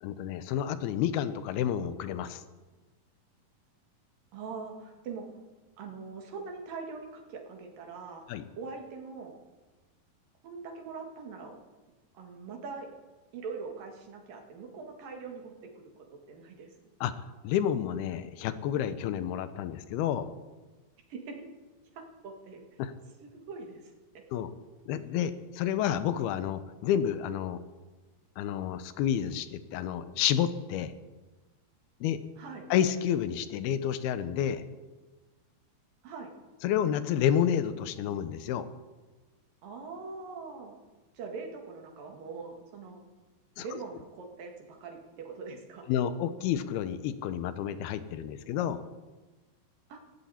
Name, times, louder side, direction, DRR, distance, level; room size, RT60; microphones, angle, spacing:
voice 1, 0.0-2.4 8.3-8.4 17.0-17.1 17.4-20.3 22.8-22.9 24.3-24.5 24.9-27.6 28.4-30.9 32.0-32.2 32.7-34.6 36.6-38.7 43.6-43.7 45.9-48.8, left 9 dB, 85° left, 12 dB, 2.8 m, -30 dB
voice 2, 4.3-5.3 5.8-8.2 8.6-9.4 10.4-11.5 12.1-12.9 13.3-15.5 16.3-16.7 21.1-21.4 22.0-22.6 23.2-23.9 32.4-32.7 36.0-36.3 39.6-40.8 41.1-43.0 43.6-45.9 49.9-50.0, right 4 dB, 65° right, 2 dB, 3.7 m, -42 dB
18.0 x 16.5 x 4.3 m, 1.2 s
omnidirectional pair, 4.4 m